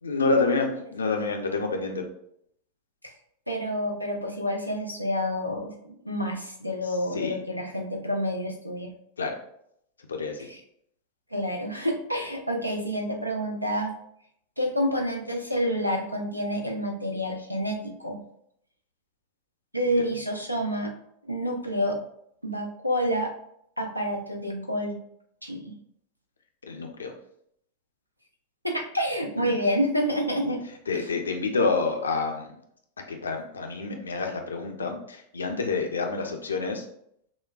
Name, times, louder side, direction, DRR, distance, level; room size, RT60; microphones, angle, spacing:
voice 1, 0.0-2.0 7.1-7.4 9.2-9.4 10.1-10.5 26.7-27.1 29.4-29.6 30.4-30.5 30.9-32.6 33.1-36.9, left 4 dB, 75° left, 3 dB, 0.6 m, -28 dB
voice 2, 3.5-8.9 10.4-10.6 11.3-13.9 14.6-18.2 19.7-20.9 21.3-22.0 22.4-23.3 23.8-25.0 25.4-25.7 28.6-31.1, equal, 90° right, 2 dB, 0.6 m, -28 dB
6.0 x 2.2 x 2.2 m, 0.72 s
figure-of-eight pair, 90°, 0 cm